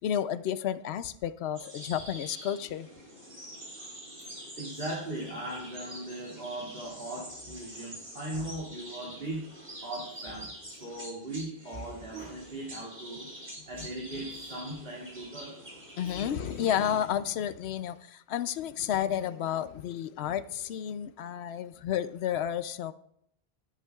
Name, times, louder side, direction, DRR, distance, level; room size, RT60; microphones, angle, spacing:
voice 1, 0.0-2.9 16.0-22.9, left 10 dB, 85° left, 0.8 m, -31 dB
sound 1, 1.5-17.1, equal, 85° right, 4.9 m, -46 dB
voice 2, 4.6-9.4 9.8-13.3 13.6-15.5 16.0-16.1, right 1 dB, 60° right, 2.7 m, -39 dB
20.0 x 8.2 x 2.3 m
omnidirectional pair, 1.1 m